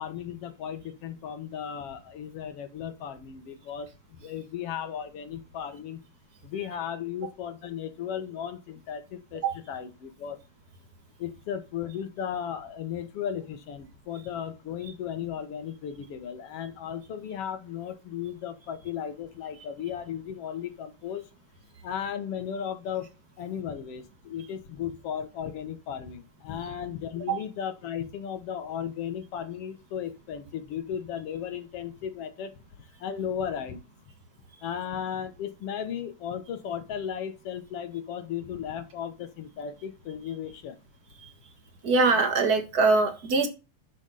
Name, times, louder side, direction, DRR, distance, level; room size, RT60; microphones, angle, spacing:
voice 1, 0.0-6.0 6.4-9.4 9.7-10.4 11.2-21.3 21.8-23.1 23.4-32.5 33.0-33.8 34.6-40.8, left 8 dB, 60° left, 9 dB, 2.0 m, -35 dB
voice 2, 41.8-43.5, right 3 dB, 40° right, 6 dB, 1.7 m, -22 dB
11.5 x 6.3 x 4.2 m, 0.30 s
omnidirectional pair, 3.5 m